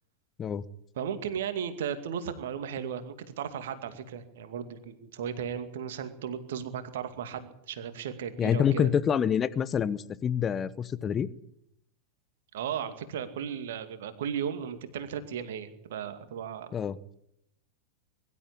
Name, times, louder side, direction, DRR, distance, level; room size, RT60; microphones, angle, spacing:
voice 1, 1.0-8.9 12.5-16.8, right 8 dB, 55° right, 10 dB, 2.3 m, -35 dB
voice 2, 8.4-11.3 16.7-17.0, left 8 dB, 25° left, 18 dB, 1.0 m, -27 dB
22.5 x 12.5 x 10.0 m, 0.77 s
figure-of-eight pair, 90°, 0 cm